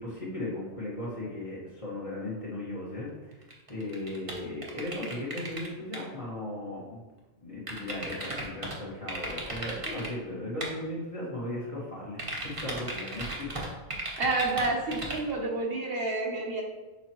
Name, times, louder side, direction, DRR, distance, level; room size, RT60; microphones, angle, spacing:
voice 1, 0.0-7.0 7.4-13.5, left 1 dB, 30° left, -6 dB, 1.9 m, -37 dB
sound 1, 3.4-5.7 5.9-6.0 7.7-8.8 9.1-10.1 10.6-10.7 12.2-15.3, right 2 dB, 30° right, 1.1 m, -35 dB
voice 2, 14.2-16.6, right 2 dB, 60° right, -1 dB, 1.1 m, -29 dB
6.8 x 5.0 x 3.0 m, 1.2 s
omnidirectional pair, 1.2 m